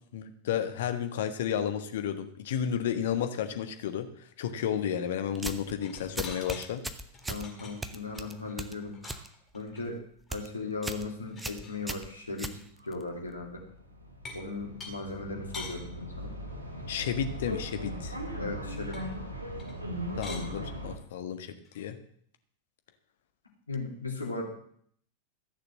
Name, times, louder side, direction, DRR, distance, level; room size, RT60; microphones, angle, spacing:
voice 1, 0.1-4.1 4.4-6.8 16.9-18.2 20.2-22.0, left 9 dB, 55° left, 8 dB, 1.4 m, -32 dB
sound 1, 5.3-5.7 6.2-7.5 7.8-9.3 9.6-9.9 10.2-10.5 10.8-11.1 11.4-13.0, right 2 dB, 10° right, 1.0 m, -38 dB
sound 2, 5.8-6.7 7.1-9.8 10.3-10.4 10.6-10.7 11.0-11.8 12.4-12.6 14.2-14.5 14.8-14.9 15.5-15.8 18.9-19.0 19.6-19.8 20.1-20.5 21.6-21.8, left 4 dB, 25° left, 4.4 m, -45 dB
voice 2, 7.3-9.0 9.5-10.0 10.3-13.6 14.3-16.3 18.4-19.1 23.7-24.4, left 3 dB, 75° left, 0 dB, 3.1 m, -37 dB
sound 3, 12.8-21.0, equal, 80° right, 2.2 m, -39 dB
14.5 x 6.8 x 7.5 m, 0.63 s
figure-of-eight pair, 90°, 0 cm